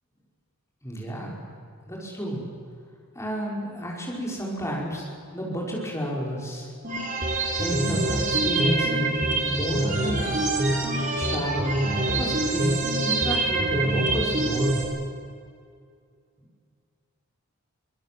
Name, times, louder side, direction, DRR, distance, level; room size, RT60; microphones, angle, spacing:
voice 1, 0.8-1.4 1.9-2.4 3.1-5.1 5.3-6.7 7.6-10.3 11.1-14.8, equal, 15° left, -3 dB, 5.6 m, -31 dB
sound 1, 6.8-14.8, right 2 dB, 35° right, 4.0 m, -25 dB
24.5 x 20.5 x 7.9 m, 2.2 s
head